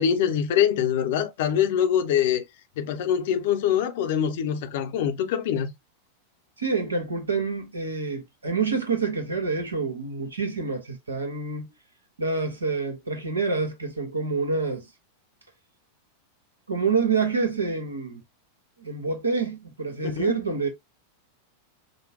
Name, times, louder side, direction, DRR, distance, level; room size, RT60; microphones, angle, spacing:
voice 1, 0.0-2.4 2.8-5.7 20.0-20.4, left 9 dB, 55° left, 0.7 m, -24 dB
voice 2, 6.6-11.7 12.2-14.9 16.7-18.2 18.8-20.7, right 4 dB, 75° right, 1.2 m, -27 dB
5.3 x 2.2 x 2.8 m
figure-of-eight pair, 90°, 0 cm